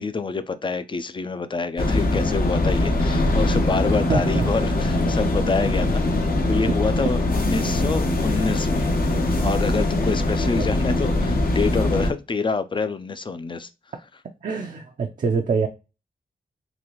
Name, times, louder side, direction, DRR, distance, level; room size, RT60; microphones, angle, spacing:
voice 1, 0.0-6.0 6.5-8.9 9.4-13.7, left 4 dB, 30° left, 0.4 m, -27 dB
sound 1, 1.8-12.1, left 2 dB, 65° left, 0.9 m, -22 dB
voice 2, 4.1-4.4 6.6-6.7 14.4-15.7, right 5 dB, 55° right, 0.5 m, -24 dB
3.9 x 2.5 x 3.0 m
wide cardioid pair, 80°, 16 cm